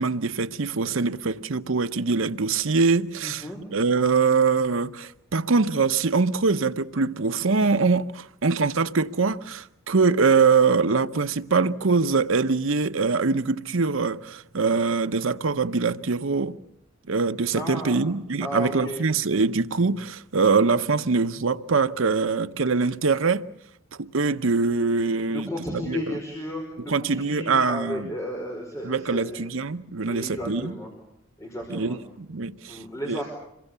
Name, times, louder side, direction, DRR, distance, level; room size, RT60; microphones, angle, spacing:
voice 1, 0.0-3.5 3.7-16.5 17.1-23.4 24.0-26.0 26.9-28.1 28.8-30.7 31.7-32.8 33.1-33.2, right 4 dB, 70° right, 0.9 m, -23 dB
voice 2, 3.2-3.6 17.5-18.0 18.4-19.1 25.3-29.4 30.0-30.9 31.4-32.0 32.7-33.2, left 1 dB, 15° left, 5.0 m, -34 dB
27.0 x 23.5 x 6.9 m
head